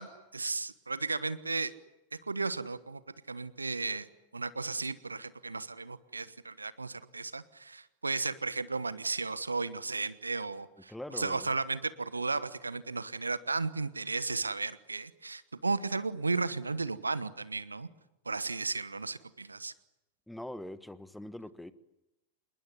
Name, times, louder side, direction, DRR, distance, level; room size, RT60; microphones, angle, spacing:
voice 1, 0.0-1.7 2.2-3.0 3.3-4.1 4.3-17.9 18.2-19.7, right 3 dB, 80° right, 17 dB, 1.1 m, -34 dB
voice 2, 10.9-11.5 20.3-21.7, left 1 dB, 5° left, 15 dB, 1.3 m, -43 dB
27.5 x 21.5 x 9.7 m, 0.91 s
figure-of-eight pair, 90°, 0 cm